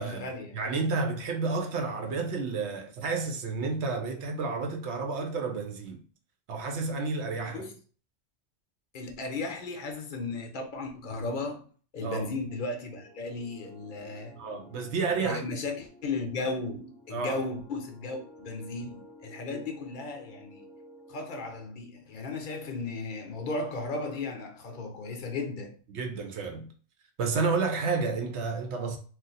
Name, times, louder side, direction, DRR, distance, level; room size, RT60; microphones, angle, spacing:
voice 1, 0.0-0.6 7.5-7.8 8.9-11.7 11.9-14.4 15.1-20.6 21.1-25.8, left 3 dB, 50° left, 0.7 m, -35 dB
voice 2, 0.5-6.0 6.5-7.6 12.0-12.3 14.4-15.5 17.1-17.4 19.5-19.6 25.9-26.7 27.2-29.0, right 4 dB, 75° right, 0.9 m, -31 dB
sound 1, 12.5-21.6, equal, ahead, 0.5 m, -53 dB
2.5 x 2.3 x 3.9 m
omnidirectional pair, 1.2 m